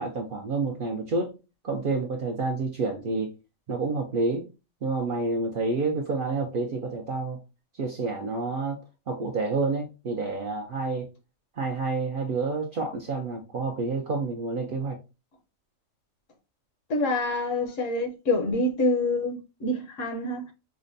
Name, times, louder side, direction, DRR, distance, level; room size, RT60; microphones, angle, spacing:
voice 1, 0.0-1.3 1.6-3.3 3.7-4.5 4.8-7.4 7.8-8.8 9.1-11.1 11.6-15.0, right 3 dB, 60° right, 0.5 m, -29 dB
voice 2, 16.9-20.5, left 2 dB, 70° left, 1.1 m, -26 dB
4.8 x 2.2 x 2.5 m
omnidirectional pair, 1.4 m